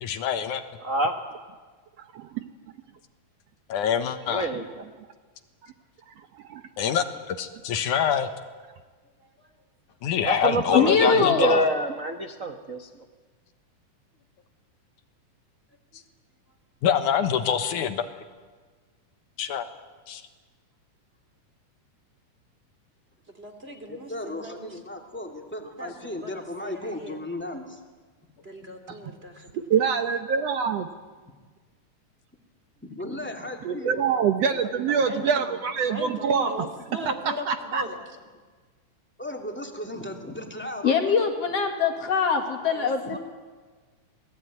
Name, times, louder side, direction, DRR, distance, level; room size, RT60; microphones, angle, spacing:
voice 1, 0.0-0.6 3.7-4.5 6.8-8.3 10.0-11.7 16.8-18.1 19.4-19.7 20.1-20.2, left 8 dB, 75° left, 9 dB, 2.7 m, -25 dB
voice 2, 0.8-1.1 4.3-4.8 10.2-12.9, right 2 dB, 40° right, 5 dB, 1.1 m, -26 dB
voice 3, 2.1-2.4 6.3-6.6 29.7-30.9 33.7-36.5 37.5-37.8, right 6 dB, 65° right, 8 dB, 1.8 m, -25 dB
voice 4, 9.2-9.5 15.9-16.0 23.3-24.8 25.8-27.2 28.4-29.9 35.0-38.1 42.7-43.2, equal, 20° right, 5 dB, 2.4 m, -39 dB
voice 5, 10.7-11.6 40.8-43.2, left 6 dB, 55° left, 4 dB, 3.0 m, -23 dB
voice 6, 23.9-27.8 31.2-31.3 32.9-34.1 34.5-34.9 39.2-41.1, left 1 dB, 5° left, 3 dB, 2.3 m, -36 dB
26.5 x 20.0 x 9.4 m, 1.4 s
omnidirectional pair, 3.6 m